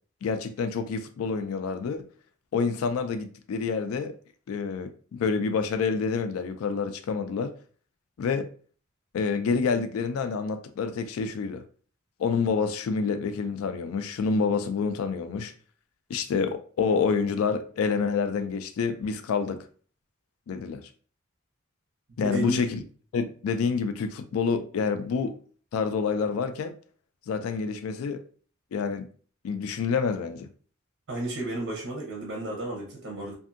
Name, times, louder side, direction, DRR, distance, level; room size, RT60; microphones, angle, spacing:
voice 1, 0.2-2.1 2.5-4.1 4.5-7.5 8.2-8.5 9.1-11.6 12.2-15.5 16.1-19.7 20.5-20.8 22.2-22.8 23.1-25.4 25.7-26.7 27.3-28.2 28.7-29.1 29.4-30.5, left 5 dB, 85° left, 0.3 m, -28 dB
voice 2, 22.2-22.6 31.1-33.3, right 1 dB, 80° right, 0.7 m, -32 dB
2.6 x 2.5 x 2.4 m
head